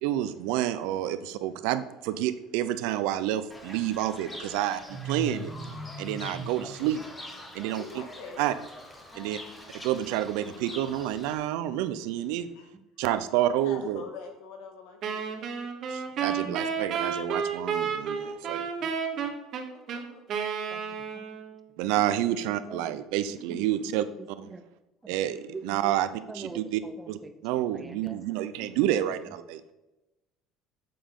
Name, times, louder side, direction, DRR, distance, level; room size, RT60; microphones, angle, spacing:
voice 1, 0.0-5.5 6.0-7.0 7.5-8.0 8.4-8.6 9.2-9.4 9.8-12.5 13.0-14.1 15.9-18.7 21.8-24.5 25.1-26.8 27.1-29.6, right 12 dB, 80° right, 12 dB, 0.6 m, -29 dB
Fowl / Bird, 3.5-11.3, right 1 dB, 10° left, 1.0 m, -41 dB
voice 2, 7.6-8.7 9.1-9.4 12.5-12.7 13.5-15.3 19.5-20.2, left 5 dB, 75° left, 4 dB, 1.8 m, -45 dB
Wind instrument woodwind instrument, 15.0-21.6, right 6 dB, 40° right, 1.0 m, -31 dB
voice 3, 18.8-19.3 20.7-21.2 22.7-22.8 23.3-23.6 24.2-24.6 25.0-25.2 25.5-25.9 26.3-27.3 27.6-28.2 28.6-28.7 29.1-29.2, right 3 dB, 10° right, 9 dB, 0.5 m, -44 dB
8.8 x 6.9 x 3.8 m, 1.0 s
cardioid pair, 170°, 0 cm